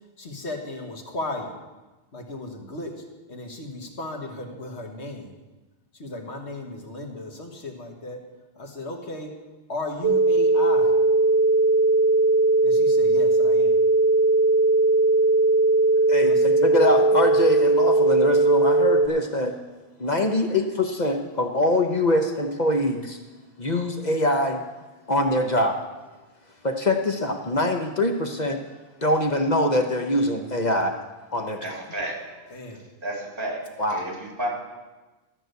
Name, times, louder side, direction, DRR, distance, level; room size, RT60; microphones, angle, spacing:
voice 1, 0.2-1.5 2.1-2.9 3.3-5.4 6.0-8.2 8.6-9.3 9.7-10.9 12.6-13.8 16.2-16.4 32.5-32.8, left 2 dB, 90° left, 2 dB, 1.9 m, -35 dB
sound 1, 10.0-19.1, right 2 dB, 75° right, 1.0 m, -19 dB
voice 2, 16.1-19.6 20.0-23.2 23.6-24.6 25.1-25.8 26.6-28.6 29.0-31.0 31.3-31.8 33.8-34.0, left 1 dB, 45° left, 4 dB, 1.0 m, -23 dB
voice 3, 31.6-32.2 33.0-33.6 33.9-34.5, right 1 dB, 55° right, -1 dB, 3.2 m, -31 dB
13.0 x 6.0 x 8.0 m, 1.2 s
omnidirectional pair, 1.1 m